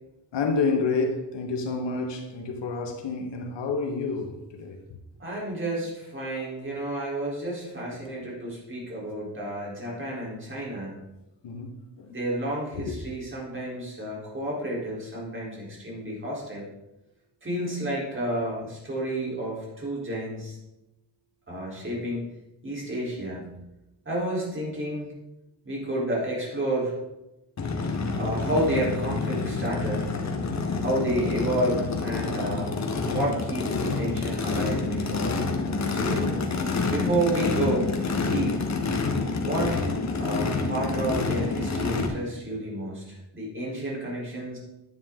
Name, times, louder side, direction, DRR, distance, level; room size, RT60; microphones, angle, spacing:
voice 1, 0.3-4.8 11.4-12.1 12.7-12.9, left 4 dB, 85° left, 1.5 m, -29 dB
voice 2, 5.2-11.0 12.1-16.7 17.4-20.6 21.5-22.3 22.6-23.5 24.0-25.1 25.6-26.9 28.2-30.1 30.8-32.8 33.1-35.3 35.9-36.4 36.9-37.9 38.2-38.7 39.4-39.7 40.2-44.6, right 1 dB, 30° right, 3.9 m, -30 dB
Race car auto racing / Idling / Accelerating revving vroom, 27.6-42.1, left 4 dB, 40° left, 1.4 m, -28 dB
10.0 x 9.7 x 3.8 m
wide cardioid pair, 125°, 42 cm